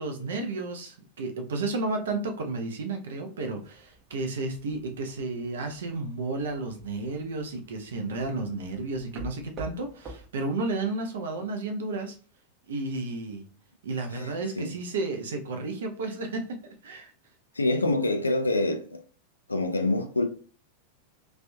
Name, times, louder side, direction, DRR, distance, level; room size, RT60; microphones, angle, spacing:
voice 1, 0.0-12.2 12.7-13.5 13.8-17.1, right 3 dB, 60° right, 0.6 m, -32 dB
sound 1, 3.6-10.3, right 1 dB, 30° right, 0.7 m, -48 dB
voice 2, 17.6-19.0 19.5-20.3, left 2 dB, 80° left, 0.5 m, -26 dB
3.3 x 2.5 x 2.2 m
figure-of-eight pair, 90°, 0 cm